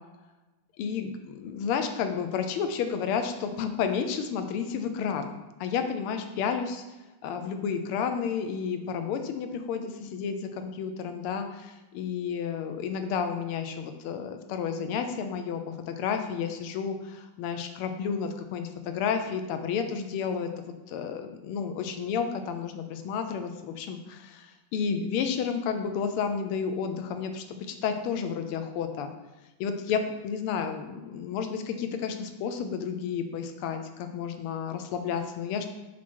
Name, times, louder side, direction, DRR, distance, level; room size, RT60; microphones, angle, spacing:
voice 1, 0.8-6.8 7.2-29.1 29.6-35.7, left 6 dB, 85° left, 7 dB, 1.6 m, -31 dB
5.9 x 4.3 x 4.5 m, 1.1 s
omnidirectional pair, 2.4 m